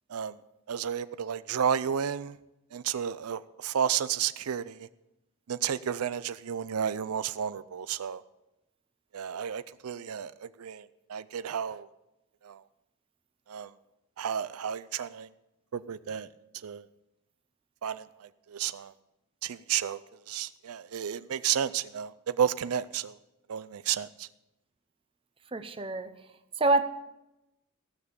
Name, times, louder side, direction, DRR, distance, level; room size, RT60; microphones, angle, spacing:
voice 1, 0.7-2.4 2.7-4.9 5.5-8.2 9.1-11.9 12.4-12.6 13.5-13.7 14.2-15.3 15.7-16.3 16.6-16.9 17.8-18.9 19.4-20.0 20.3-23.2 23.5-24.3, right 8 dB, 85° right, 15 dB, 0.5 m, -32 dB
voice 2, 25.5-26.1 26.6-26.8, right 2 dB, 25° right, 10 dB, 0.7 m, -26 dB
15.0 x 6.6 x 8.5 m, 0.93 s
head